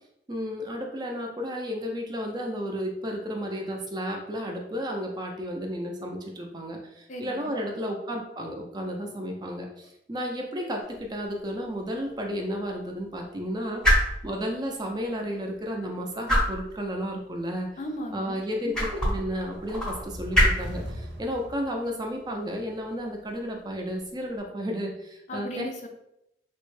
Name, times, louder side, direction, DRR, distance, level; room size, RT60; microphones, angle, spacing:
voice 1, 0.3-13.8 14.2-17.7 18.1-25.5, equal, 25° right, 1 dB, 0.4 m, -32 dB
voice 2, 7.1-7.5 17.8-18.4 25.3-25.9, equal, 40° left, 3 dB, 0.4 m, -36 dB
sound 1, 10.8-24.4, equal, 5° left, 0.7 m, -30 dB
sound 2, 19.7-22.4, equal, 80° right, 0.5 m, -40 dB
3.3 x 2.1 x 3.1 m, 0.80 s
head